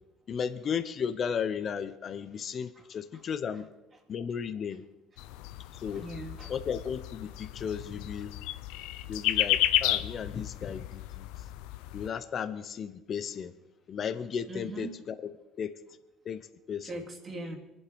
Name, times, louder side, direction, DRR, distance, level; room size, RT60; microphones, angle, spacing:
voice 1, 0.3-3.7 4.1-4.8 5.7-6.0 6.5-8.3 9.1-11.3 11.9-13.5 13.9-15.1 15.6-15.7 16.2-16.4 16.7-16.9, left 7 dB, 50° left, 11 dB, 0.9 m, -34 dB
sound 1, 5.2-12.1, left 14 dB, 85° left, 0.6 m, -32 dB
voice 2, 5.9-6.5 14.5-15.0 16.8-17.6, right 2 dB, 40° right, 1 dB, 2.9 m, -40 dB
23.5 x 8.2 x 5.0 m, 1.0 s
supercardioid pair, 80°, 0 cm